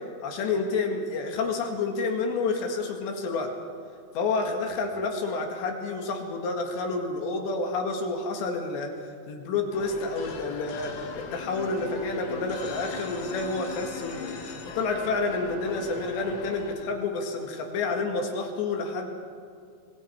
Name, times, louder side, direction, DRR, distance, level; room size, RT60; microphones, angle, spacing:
voice 1, 0.2-3.5 4.2-8.9 9.3-14.3 14.7-19.1, left 3 dB, 70° left, 2 dB, 4.0 m, -29 dB
sound 1, 9.7-16.7, left 4 dB, 90° left, 4.6 m, -39 dB
25.5 x 22.0 x 4.7 m, 2.2 s
omnidirectional pair, 5.4 m